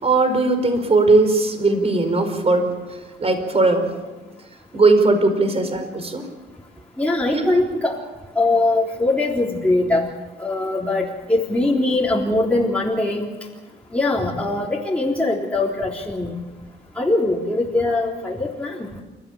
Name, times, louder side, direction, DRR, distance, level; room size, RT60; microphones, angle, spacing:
voice 1, 0.0-2.7 3.2-3.9 4.7-6.3 7.3-7.5, right 3 dB, 30° right, 7 dB, 4.9 m, -18 dB
voice 2, 7.0-8.0 8.4-10.1 10.4-13.3 13.9-16.3 17.0-18.8, left 2 dB, 5° left, -4 dB, 3.7 m, -21 dB
28.5 x 14.5 x 8.8 m, 1.2 s
cardioid pair, 90°, 20 cm